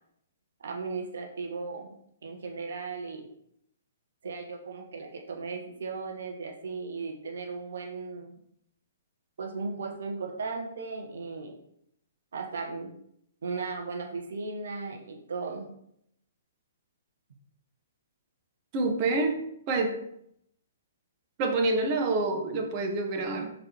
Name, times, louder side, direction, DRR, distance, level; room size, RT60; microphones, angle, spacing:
voice 1, 0.6-2.0 2.2-3.3 4.2-8.3 9.4-11.6 12.3-12.9 13.4-15.8, right 4 dB, 65° right, 1 dB, 1.5 m, -36 dB
voice 2, 18.7-19.3 19.7-20.0 21.4-23.5, right 2 dB, 35° right, 3 dB, 1.3 m, -27 dB
5.1 x 4.5 x 4.5 m, 0.72 s
figure-of-eight pair, 125°, 0 cm